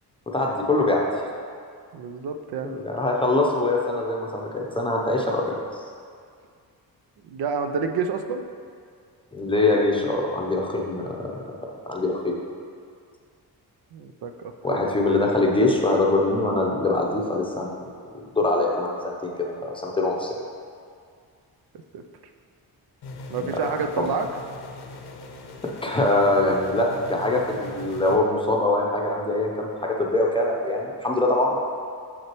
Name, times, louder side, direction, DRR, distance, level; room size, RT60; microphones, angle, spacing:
voice 1, 0.3-1.0 2.6-5.6 9.3-11.3 11.9-12.4 14.6-17.8 18.1-20.4 23.4-23.6 24.0-24.1 25.6-31.6, left 2 dB, 15° left, -1 dB, 0.6 m, -23 dB
voice 2, 1.9-2.7 7.3-8.5 13.9-14.8 21.9-22.0 23.3-24.3, right 5 dB, 70° right, 6 dB, 0.5 m, -29 dB
sound 1, 23.0-28.2, left 2 dB, 80° left, 0.7 m, -41 dB
6.4 x 6.1 x 3.0 m, 2.2 s
cardioid pair, 120°, 40 cm